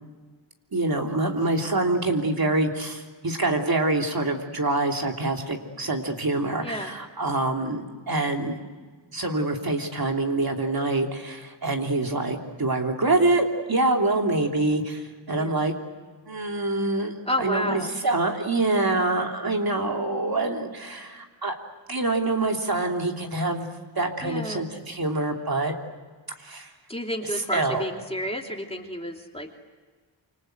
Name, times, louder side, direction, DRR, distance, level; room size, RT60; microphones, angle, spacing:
voice 1, 0.7-8.6 9.1-15.7 16.2-21.6 21.9-23.7 23.9-25.7 26.4-26.7 27.5-27.9, right 2 dB, 50° right, 2 dB, 3.2 m, -25 dB
voice 2, 6.6-6.9 15.4-15.6 17.3-17.9 24.2-24.6 26.9-29.6, left 1 dB, 15° left, 2 dB, 3.0 m, -31 dB
28.0 x 25.5 x 8.0 m, 1.4 s
wide cardioid pair, 85°, 46 cm